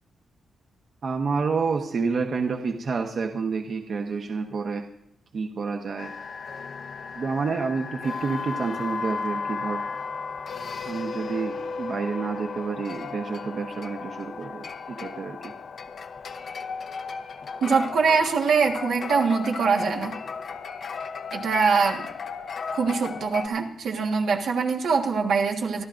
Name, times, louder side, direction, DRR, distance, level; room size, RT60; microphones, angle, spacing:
voice 1, 1.0-4.8 5.3-6.1 7.2-9.8 10.8-15.5, right 5 dB, 55° right, 3 dB, 1.0 m, -29 dB
sound 1, 6.0-23.5, left 5 dB, 60° left, 0.8 m, -35 dB
voice 2, 17.6-20.2 21.3-22.1 22.7-25.8, right 5 dB, 80° right, 2 dB, 1.5 m, -23 dB
26.0 x 12.0 x 2.6 m, 0.74 s
cardioid pair, 105°, 0 cm